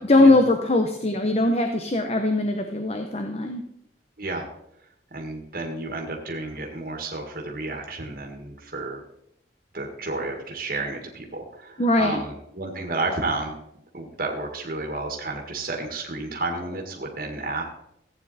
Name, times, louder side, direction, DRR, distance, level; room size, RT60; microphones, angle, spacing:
voice 1, 0.0-3.6 11.8-12.2, left 2 dB, 35° left, 6 dB, 0.9 m, -21 dB
voice 2, 5.1-9.0 9.7-13.6 13.9-17.6, right 2 dB, 55° right, 1 dB, 1.9 m, -31 dB
15.0 x 8.9 x 4.2 m, 0.76 s
head